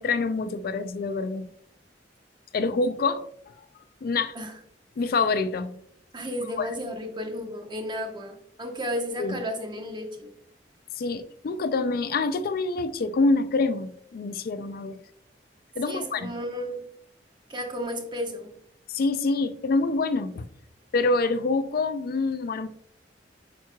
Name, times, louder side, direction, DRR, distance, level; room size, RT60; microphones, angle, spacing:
voice 1, 0.0-1.5 2.5-3.3 4.0-4.4 5.0-5.8 6.6-6.7 9.2-9.4 11.0-15.0 15.8-16.3 18.9-20.5 20.9-22.7, left 3 dB, 55° left, 0.4 m, -26 dB
voice 2, 6.1-10.3 15.8-16.8 17.5-18.5, equal, 25° right, 1.1 m, -33 dB
9.0 x 4.6 x 2.3 m
head